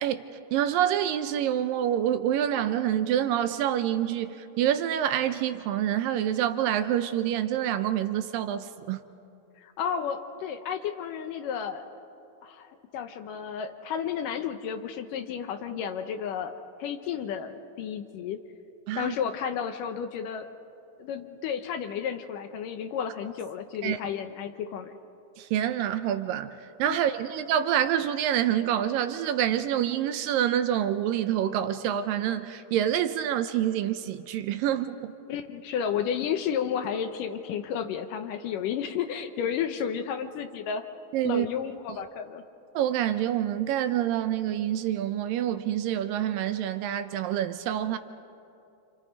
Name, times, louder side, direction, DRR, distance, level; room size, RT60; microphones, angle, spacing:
voice 1, 0.5-9.0 18.9-19.2 23.8-24.0 25.4-35.1 41.1-41.5 42.8-48.0, right 10 dB, 75° right, 10 dB, 2.2 m, -27 dB
voice 2, 9.6-11.8 12.4-16.5 16.8-18.4 19.0-20.5 21.0-24.9 35.3-40.9 41.2-42.4, left 8 dB, 70° left, 7 dB, 2.3 m, -32 dB
28.5 x 28.5 x 5.3 m, 2.8 s
omnidirectional pair, 4.3 m